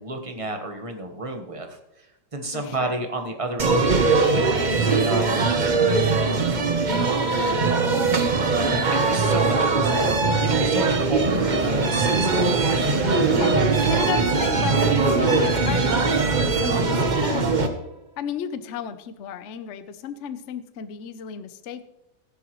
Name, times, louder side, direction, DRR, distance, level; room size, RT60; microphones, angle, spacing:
voice 1, 0.0-1.7 2.3-3.9 4.2-6.4 8.9-12.5, right 2 dB, 20° right, 4 dB, 1.0 m, -31 dB
voice 2, 2.5-3.0 13.3-13.6 13.9-17.6 18.2-21.8, left 8 dB, 60° left, 11 dB, 0.7 m, -34 dB
sound 1, 3.6-17.7, right 4 dB, 40° right, 0.7 m, -21 dB
sound 2, 10.3-16.8, right 3 dB, 75° right, 2.5 m, -34 dB
15.5 x 11.0 x 3.1 m, 0.89 s
omnidirectional pair, 2.2 m